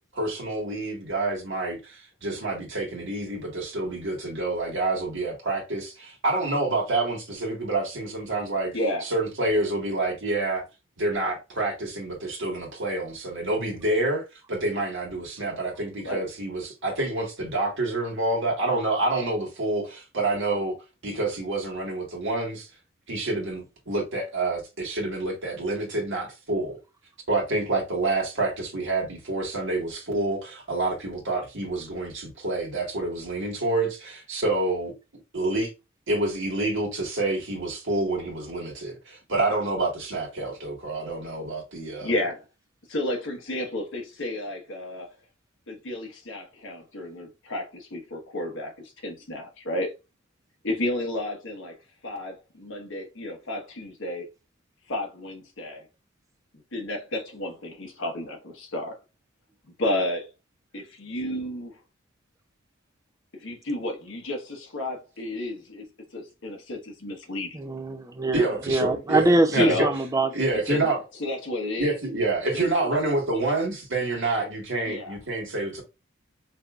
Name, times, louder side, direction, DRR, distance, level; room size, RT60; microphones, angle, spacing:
voice 1, 0.1-8.7 9.0-10.6 11.0-20.8 21.0-22.7 23.1-26.8 27.3-34.9 35.3-35.7 36.1-42.1 68.3-69.9 70.3-71.0 71.8-75.8, right 2 dB, 60° right, 1.5 m, -28 dB
voice 2, 8.7-9.0 16.0-16.2 42.0-42.4 42.9-45.1 45.7-48.7 49.0-49.9 50.6-51.7 52.0-54.3 54.9-55.8 56.7-59.0 59.8-60.3 60.7-61.7 63.4-65.8 66.1-67.5 69.5-69.9 70.7-70.9 71.2-71.9 72.6-73.0 74.9-75.1, left 1 dB, 65° left, 1.2 m, -31 dB
voice 3, 67.5-70.3, right 2 dB, 15° right, 0.5 m, -23 dB
5.2 x 2.7 x 2.4 m
head